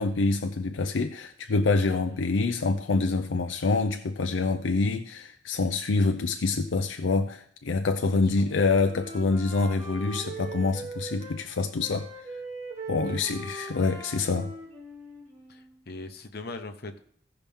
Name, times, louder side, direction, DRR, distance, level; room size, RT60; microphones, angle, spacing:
voice 1, 0.0-12.1 12.9-14.5, left 3 dB, 80° left, 0.6 m, -26 dB
Wind instrument woodwind instrument, 7.9-11.4 11.8-15.8, right 2 dB, 35° right, 2.5 m, -41 dB
voice 2, 8.1-8.5 13.0-13.5 15.5-17.0, left 2 dB, 55° left, 1.0 m, -41 dB
16.0 x 5.7 x 3.6 m
head